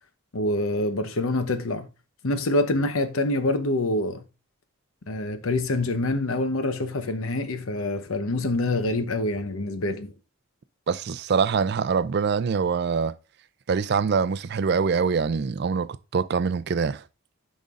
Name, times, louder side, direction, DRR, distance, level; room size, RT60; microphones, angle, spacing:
voice 1, 0.3-1.9 2.2-4.3 5.1-10.1, left 2 dB, 85° left, 0.9 m, -26 dB
voice 2, 10.9-13.1 13.7-17.0, right 5 dB, 50° right, 0.4 m, -24 dB
10.5 x 5.2 x 2.5 m
head